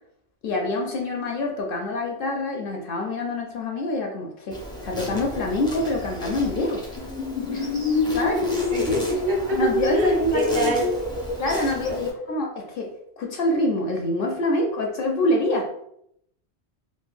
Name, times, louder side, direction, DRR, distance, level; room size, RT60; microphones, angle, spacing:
voice 1, 0.4-6.8 7.5-7.7 8.1-8.5 9.5-10.7 11.4-15.7, left 2 dB, 65° left, 1 dB, 0.7 m, -26 dB
Insect, 4.5-12.1, equal, 5° left, 0.4 m, -36 dB
sound 1, 7.0-12.3, left 2 dB, 90° left, 1.2 m, -27 dB
voice 2, 8.7-9.6 9.9-11.0 11.9-12.0, left 1 dB, 60° right, 0 dB, 0.8 m, -25 dB
3.7 x 2.3 x 2.4 m, 0.75 s
omnidirectional pair, 1.1 m